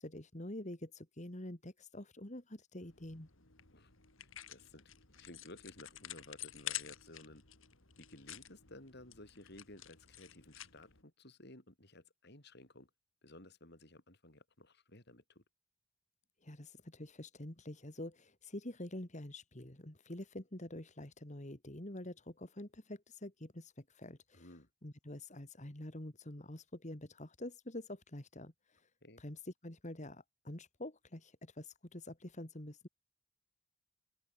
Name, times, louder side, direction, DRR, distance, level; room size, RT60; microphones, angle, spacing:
voice 1, 0.0-3.3 16.4-28.9 29.2-32.9, left 1 dB, 35° left, 2.5 m, -47 dB
sound 1, 2.8-11.0, left 13 dB, 70° left, 3.7 m, -49 dB
voice 2, 4.2-7.4 8.0-12.9 13.2-15.4 24.3-24.7 29.0-29.2, left 1 dB, 50° left, 5.0 m, -56 dB
open air
head